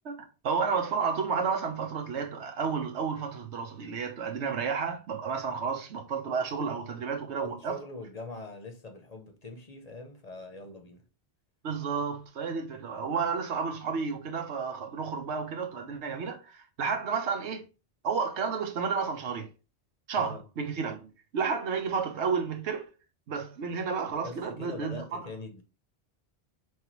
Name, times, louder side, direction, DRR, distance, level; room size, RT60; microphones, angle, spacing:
voice 1, 0.4-7.8 11.6-17.6 18.0-19.5 20.1-22.8 23.3-25.2, right 5 dB, 90° right, 1.1 m, -31 dB
voice 2, 7.4-11.0 20.2-20.4 24.2-25.6, left 3 dB, 40° left, 0.7 m, -43 dB
4.6 x 3.2 x 2.9 m
omnidirectional pair, 1.1 m